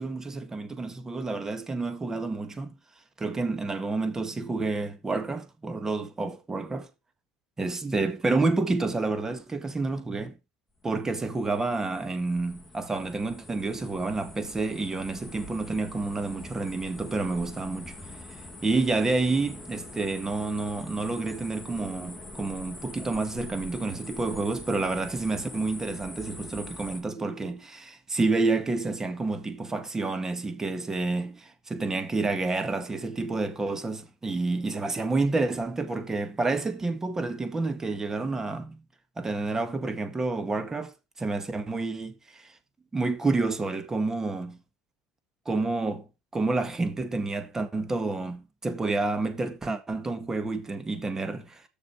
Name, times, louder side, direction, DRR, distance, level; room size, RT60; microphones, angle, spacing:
voice 1, 0.0-2.8 3.2-6.9 7.6-10.4 10.8-18.0 18.6-38.8 39.2-42.5 42.9-44.6 45.4-46.1 46.3-51.6, right 3 dB, 20° right, 1.6 m, -29 dB
sound 1, 10.8-27.0, left 2 dB, 5° left, 2.3 m, -44 dB
6.7 x 6.4 x 4.5 m
supercardioid pair, 95°, 3 cm